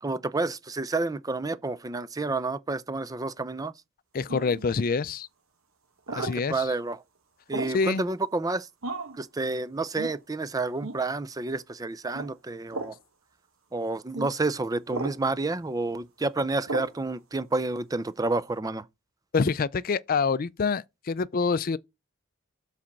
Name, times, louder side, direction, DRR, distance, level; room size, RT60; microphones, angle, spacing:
voice 1, 0.0-3.7 6.1-7.0 7.5-8.7 9.1-12.9 13.7-18.9, right 3 dB, 15° right, 0.4 m, -30 dB
voice 2, 4.1-5.3 6.2-6.5 7.7-8.1 19.3-21.8, left 4 dB, 45° left, 0.4 m, -26 dB
sound 1, 4.3-4.7 6.1-6.4 7.5-7.8 8.8-9.2 10.0-10.2 10.8-11.0 12.1-12.3 12.7-13.0 14.1-14.3 14.9-15.2 16.7-17.0, right 3 dB, 80° right, 1.3 m, -34 dB
7.5 x 4.2 x 5.8 m
head